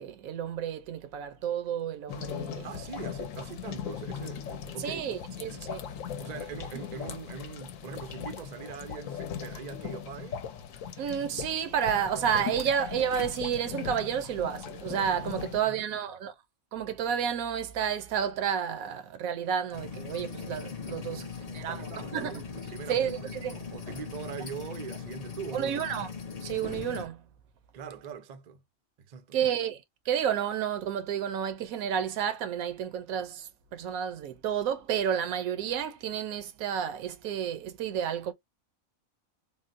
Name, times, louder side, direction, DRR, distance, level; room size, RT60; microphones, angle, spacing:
voice 1, 0.0-2.7 4.8-5.8 11.0-16.3 16.7-22.4 22.9-23.5 25.5-26.1 26.4-27.2 29.3-38.3, right 8 dB, 85° right, 1.1 m, -31 dB
sound 1, 2.1-15.6, left 8 dB, 75° left, 0.9 m, -39 dB
voice 2, 2.6-5.0 5.3-5.7 6.2-10.4 15.3-15.9 21.0-25.9 27.7-28.6 29.0-29.4, right 6 dB, 60° right, 0.4 m, -42 dB
sound 2, 19.7-27.1, left 5 dB, 45° left, 0.5 m, -40 dB
3.6 x 2.0 x 2.5 m
omnidirectional pair, 1.5 m